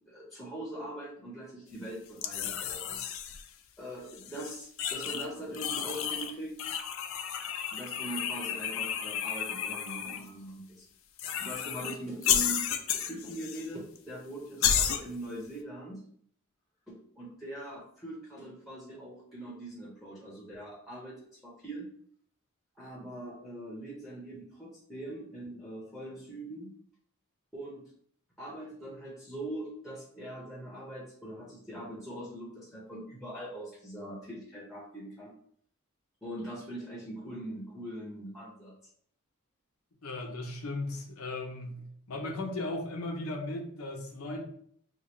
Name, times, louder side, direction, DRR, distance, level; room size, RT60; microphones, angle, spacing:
voice 1, 0.0-3.0 3.8-6.5 7.7-10.9 11.4-12.6 12.9-16.0 16.9-21.9 22.7-26.7 27.5-27.9 28.4-35.3 36.2-38.7, right 1 dB, ahead, -5 dB, 0.7 m, -42 dB
sound 1, 2.2-3.5 4.1-5.3 5.5-6.3 6.6-10.2 11.2-12.0 12.2-13.7 14.0-14.1 14.6-15.0, left 8 dB, 65° left, 0.4 m, -32 dB
voice 2, 40.0-41.8 42.1-44.4, left 2 dB, 80° left, 2 dB, 0.7 m, -36 dB
2.9 x 2.3 x 4.2 m, 0.63 s
head